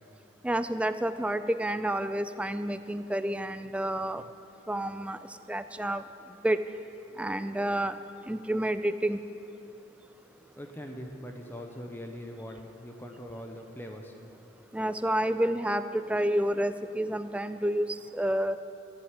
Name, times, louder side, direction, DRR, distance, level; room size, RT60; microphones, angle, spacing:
voice 1, 0.4-4.2 4.7-5.2 5.5-6.0 6.4-6.6 7.2-7.9 8.3-9.2 14.7-17.9 18.2-18.5, right 1 dB, 5° right, 11 dB, 0.3 m, -29 dB
voice 2, 10.6-14.1, equal, 10° left, 3 dB, 0.8 m, -42 dB
14.0 x 7.7 x 9.7 m, 2.8 s
head